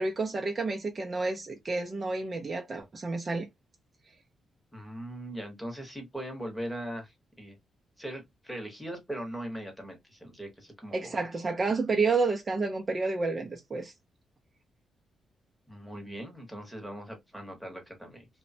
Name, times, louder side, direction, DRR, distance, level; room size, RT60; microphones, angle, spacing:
voice 1, 0.0-3.5 10.9-13.9, right 3 dB, 30° right, 0.4 m, -30 dB
voice 2, 4.7-7.1 7.4-7.6 8.0-11.2 15.7-18.3, right 1 dB, ahead, 0.9 m, -40 dB
3.0 x 2.1 x 2.6 m
wide cardioid pair, 145°, 0 cm